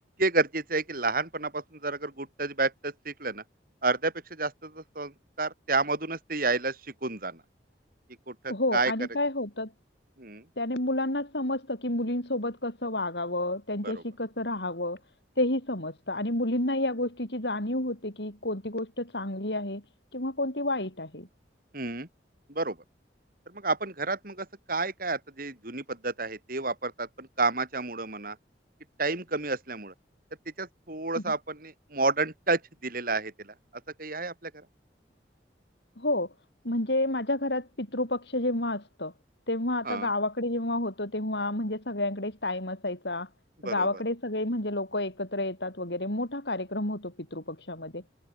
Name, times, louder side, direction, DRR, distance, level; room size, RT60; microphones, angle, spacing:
voice 1, 0.2-3.4 3.8-7.4 8.3-8.9 10.2-10.4 13.8-14.0 21.7-22.1 22.5-22.8 23.5-28.4 29.0-29.9 30.6-33.5 34.0-34.6 39.8-40.1 43.6-44.0, right 3 dB, 55° right, 5.5 m, -30 dB
voice 2, 8.5-9.7 10.6-15.0 15.4-19.8 20.1-21.3 31.2-31.3 36.0-36.3 36.6-39.1 39.5-43.3 43.6-48.0, left 1 dB, 75° left, 7.8 m, -30 dB
head